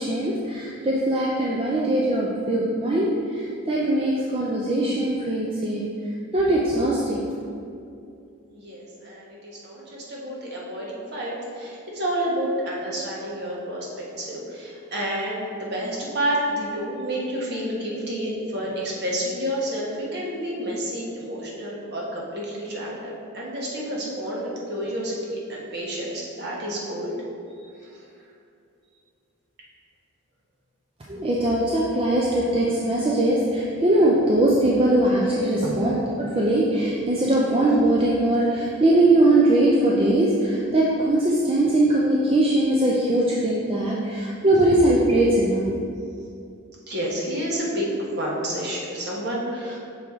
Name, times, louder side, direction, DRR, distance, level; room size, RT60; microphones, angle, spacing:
voice 1, 0.0-5.8 6.3-7.2 31.1-45.7, right 1 dB, 25° right, -4 dB, 0.4 m, -21 dB
voice 2, 8.5-27.1 27.8-27.9 46.9-47.9 48.2-49.8, equal, 50° right, -4 dB, 1.2 m, -29 dB
6.2 x 4.6 x 3.6 m, 2.5 s
head